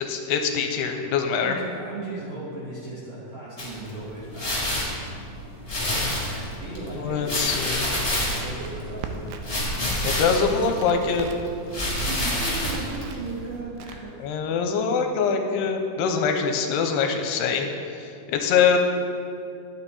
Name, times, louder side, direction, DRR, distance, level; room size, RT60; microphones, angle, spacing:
voice 1, 0.1-1.6 7.0-7.9 10.0-11.3 14.2-18.8, left 6 dB, 85° left, 4 dB, 2.6 m, -24 dB
voice 2, 1.3-4.8 6.3-9.3 11.9-14.3, right 2 dB, 65° right, -6 dB, 1.7 m, -37 dB
sound 1, 3.6-13.6, left 1 dB, 25° left, 0.8 m, -29 dB
Crackle, 8.2-9.7 9.9-11.5 11.9-13.2 13.8-14.4, right 7 dB, 90° right, 2.1 m, -39 dB
11.0 x 8.5 x 4.2 m, 2.6 s
omnidirectional pair, 4.8 m